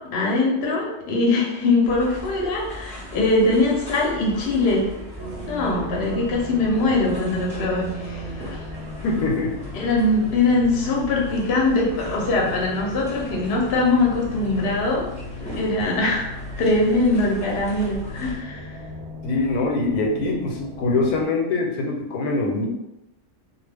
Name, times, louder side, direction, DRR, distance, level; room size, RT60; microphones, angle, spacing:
voice 1, 0.1-4.8 5.5-8.6 9.7-15.1 15.5-16.2 16.6-18.8, left 2 dB, 55° left, -2 dB, 0.7 m, -22 dB
sound 1, 1.8-18.3, left 1 dB, 5° left, 0.6 m, -39 dB
sound 2, 5.2-21.2, equal, 85° right, 1.1 m, -37 dB
voice 2, 9.0-9.5 19.2-22.7, left 3 dB, 85° left, 1 dB, 1.1 m, -23 dB
2.3 x 2.2 x 3.3 m, 0.92 s
omnidirectional pair, 1.6 m